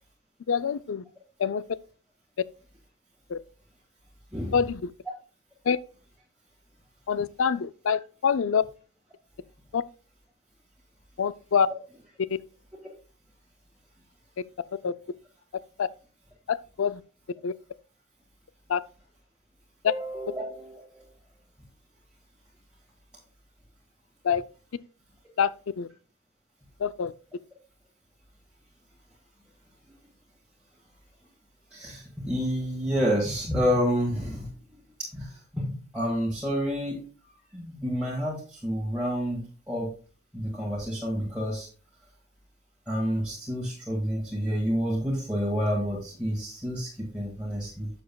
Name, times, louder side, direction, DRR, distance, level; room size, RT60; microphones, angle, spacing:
voice 1, 0.5-1.0 1.4-1.6 3.3-3.4 4.5-4.9 5.7-5.8 7.1-8.6 9.7-9.8 11.2-11.7 12.3-12.4 14.8-14.9 15.8-15.9 16.5-17.0 17.4-17.5 18.7-18.8 24.2-24.4 25.4-25.5 25.8-25.9 26.8-27.1, left 6 dB, 60° left, 0.4 m, -25 dB
voice 2, 19.9-21.0 31.7-34.5 35.1-37.1 37.5-39.9 40.3-41.7 42.9-47.9, equal, 5° right, 1.8 m, -29 dB
11.5 x 6.8 x 2.3 m
head